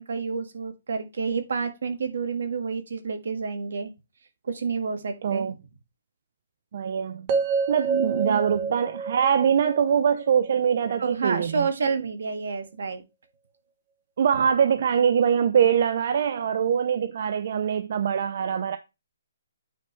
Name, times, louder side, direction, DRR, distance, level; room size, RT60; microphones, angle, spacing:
voice 1, 0.0-3.9 4.4-5.5 7.8-8.4 11.0-13.0, right 5 dB, 65° right, 1.8 m, -29 dB
voice 2, 5.2-5.5 6.7-7.3 7.7-11.7 14.2-18.8, right 7 dB, 45° right, 0.6 m, -23 dB
sound 1, 7.3-11.4, right 5 dB, 25° right, 1.1 m, -29 dB
9.3 x 5.1 x 3.2 m
hypercardioid pair, 170°, 0 cm